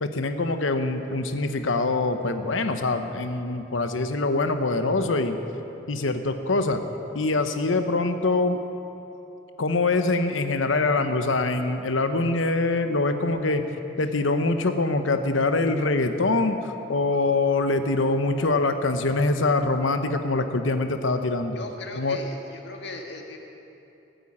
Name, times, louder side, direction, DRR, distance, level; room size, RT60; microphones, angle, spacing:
voice 1, 0.0-5.4 5.9-6.8 7.1-8.6 9.6-13.6 14.0-21.6 21.9-22.2, left 3 dB, 85° left, 8 dB, 1.0 m, -24 dB
voice 2, 21.5-23.4, left 2 dB, 60° left, 2 dB, 1.8 m, -38 dB
16.5 x 9.1 x 8.8 m, 2.9 s
head